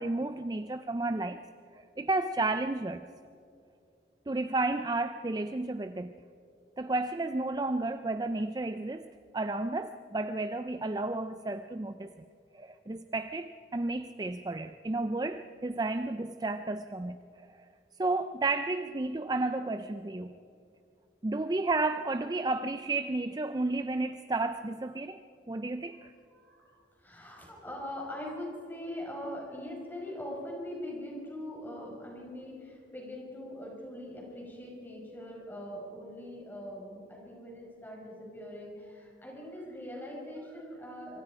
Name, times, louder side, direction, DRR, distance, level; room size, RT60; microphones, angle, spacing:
voice 1, 0.0-1.4 1.8-3.1 4.3-6.1 6.8-12.1 12.5-17.7 18.0-20.3 21.2-25.2 25.5-26.1, right 2 dB, 20° right, 10 dB, 0.4 m, -32 dB
voice 2, 26.3-26.7 27.0-41.2, left 1 dB, 10° left, -2 dB, 5.4 m, -42 dB
26.0 x 24.5 x 4.9 m, 2.6 s
head